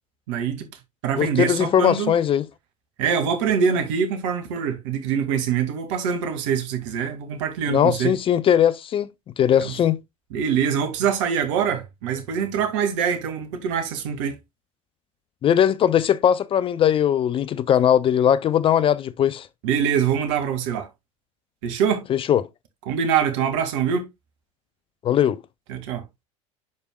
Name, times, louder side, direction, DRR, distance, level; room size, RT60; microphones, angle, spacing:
voice 1, 0.3-0.7 1.0-2.1 3.0-8.1 9.6-9.7 10.3-14.4 19.6-20.9 21.6-22.0 22.9-24.1 25.7-26.0, right 7 dB, 60° right, 2.2 m, -24 dB
voice 2, 1.2-2.5 7.7-9.1 9.4-10.0 15.4-19.5 22.1-22.5 25.0-25.4, left 9 dB, 30° left, 0.5 m, -19 dB
10.5 x 5.1 x 2.3 m
hypercardioid pair, 80°, 17 cm